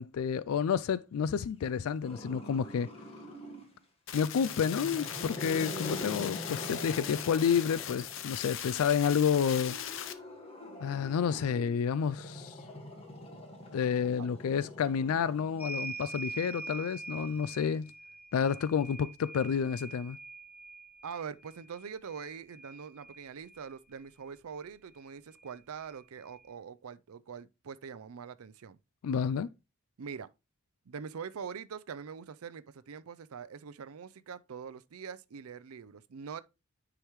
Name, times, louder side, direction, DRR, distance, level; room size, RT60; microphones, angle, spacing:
voice 1, 0.0-2.9 4.1-9.8 10.8-12.6 13.7-17.9 18.3-20.2 29.0-29.5, left 7 dB, 80° left, 0.3 m, -30 dB
Growling, 2.0-3.8 4.3-8.5 9.4-16.0, left 1 dB, 25° left, 1.6 m, -44 dB
sound 1, 4.1-10.1, left 9 dB, 60° left, 0.7 m, -39 dB
sound 2, 15.6-23.7 25.0-25.1 25.4-26.4, right 3 dB, 10° right, 0.9 m, -45 dB
voice 2, 21.0-28.8 30.0-30.3 30.9-36.4, right 6 dB, 85° right, 0.5 m, -43 dB
9.8 x 4.9 x 3.1 m
head